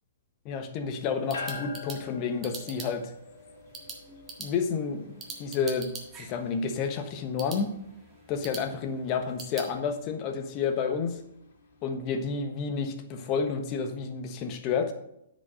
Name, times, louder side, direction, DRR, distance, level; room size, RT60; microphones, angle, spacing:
voice 1, 0.4-3.1 4.4-5.1 5.4-5.9 6.2-7.7 8.3-11.2 11.8-14.9, left 5 dB, 35° left, 7 dB, 1.2 m, -30 dB
sound 1, 1.0-9.7, right 4 dB, 20° right, 1.6 m, -45 dB
sound 2, 1.3-12.9, left 4 dB, 70° left, 2.6 m, -47 dB
9.4 x 5.4 x 6.3 m, 0.79 s
hypercardioid pair, 145°, 0 cm